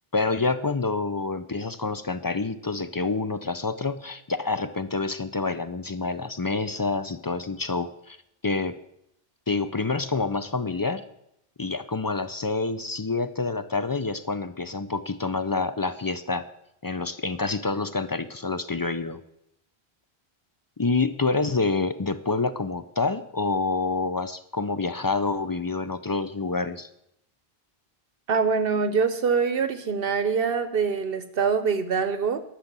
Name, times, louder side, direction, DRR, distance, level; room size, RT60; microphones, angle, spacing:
voice 1, 0.1-8.2 8.4-8.8 9.5-11.0 11.6-16.5 16.8-19.2 20.8-26.9, left 3 dB, 35° left, 12 dB, 0.4 m, -27 dB
voice 2, 28.3-32.4, right 5 dB, 65° right, 11 dB, 0.9 m, -24 dB
11.5 x 6.4 x 7.4 m, 0.78 s
omnidirectional pair, 1.0 m